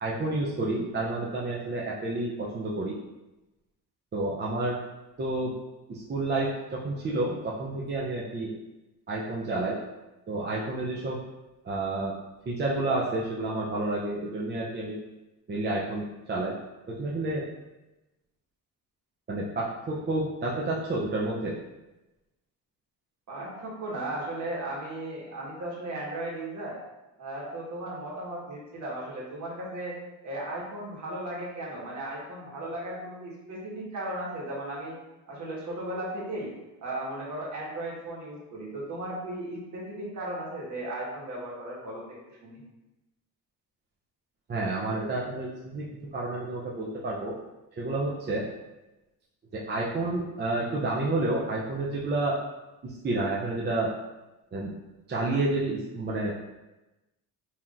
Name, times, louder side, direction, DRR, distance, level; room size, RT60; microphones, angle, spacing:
voice 1, 0.0-3.0 4.1-4.8 5.2-5.6 5.9-8.5 9.1-9.8 10.3-11.2 11.6-12.2 12.5-15.0 15.5-16.6 16.9-17.5 19.3-21.6 44.5-47.4 47.8-48.5 49.5-52.4 52.8-53.9 54.5-54.8 55.1-56.3, right 2 dB, 30° right, -5 dB, 0.5 m, -30 dB
voice 2, 23.3-26.8 27.2-35.0 35.3-36.5 36.8-42.0 42.4-42.6, right 1 dB, 50° right, -4 dB, 1.5 m, -36 dB
5.6 x 2.9 x 2.5 m, 1.0 s
cardioid pair, 125°, 38 cm